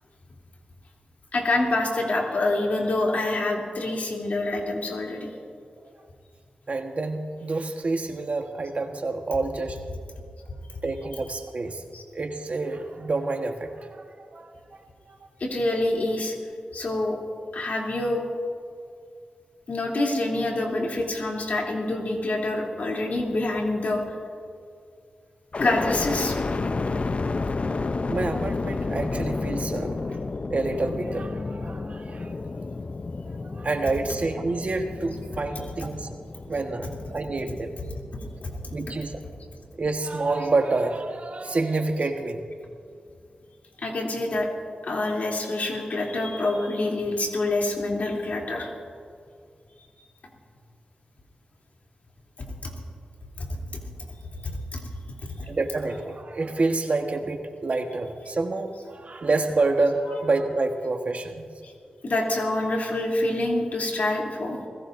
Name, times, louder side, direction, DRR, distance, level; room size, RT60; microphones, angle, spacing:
voice 1, 1.3-5.3 11.9-12.0 15.4-16.3 16.7-17.2 17.5-18.2 19.7-24.0 25.6-26.4 38.2-38.7 43.8-44.5 44.8-48.7 52.4-52.7 53.4-53.8 54.4-54.8 61.6-61.7 62.0-64.7, left 2 dB, 65° left, -2 dB, 3.1 m, -26 dB
voice 2, 6.7-9.8 10.8-11.8 12.1-14.5 15.1-15.2 28.1-30.2 30.5-32.4 33.4-36.1 36.5-37.7 38.7-39.1 39.8-42.4 55.4-61.5, right 3 dB, 55° right, 5 dB, 1.3 m, -28 dB
sound 1, 25.5-39.5 40.0-40.8, left 3 dB, 50° left, 0.6 m, -31 dB
27.0 x 17.0 x 2.6 m, 2.2 s
cardioid pair, 45°, 3 cm